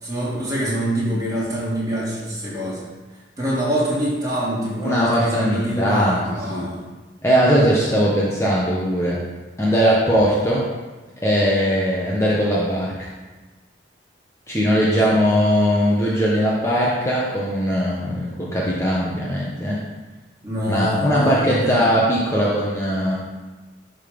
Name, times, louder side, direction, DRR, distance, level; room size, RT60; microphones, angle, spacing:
voice 1, 0.0-2.9 3.4-6.8 14.9-15.1 20.4-21.9, equal, 20° right, -7 dB, 2.6 m, -25 dB
voice 2, 4.8-6.2 6.5-6.7 7.2-9.2 9.6-10.6 11.2-13.1 14.5-19.8 20.7-23.1, equal, 15° left, -6 dB, 1.0 m, -20 dB
11.5 x 3.9 x 5.2 m, 1.2 s
head